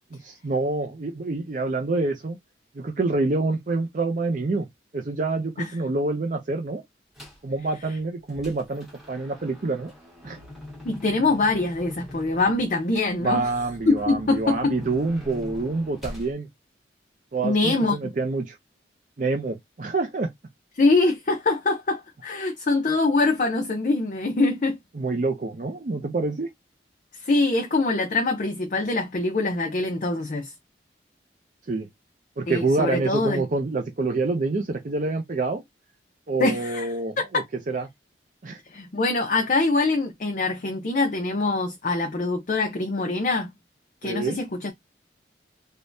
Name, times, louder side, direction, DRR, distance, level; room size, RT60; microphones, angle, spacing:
voice 1, 0.2-2.4 2.8-4.7 4.9-6.8 7.4-9.9 10.2-10.4 13.2-16.5 17.3-18.6 19.2-20.3 24.9-26.5 31.7-31.9 32.4-35.6 36.3-37.9 38.4-38.6 44.0-44.4, right 3 dB, 45° right, 0.5 m, -27 dB
sound 1, 7.1-7.5 8.0-16.3, left 1 dB, ahead, 1.1 m, -43 dB
voice 2, 10.8-13.4 13.9-14.8 17.4-18.1 20.8-24.8 27.2-30.5 32.5-33.4 36.4-36.9 37.2-37.4 38.7-43.5 44.0-44.7, left 3 dB, 45° left, 0.6 m, -24 dB
3.3 x 2.2 x 2.6 m
head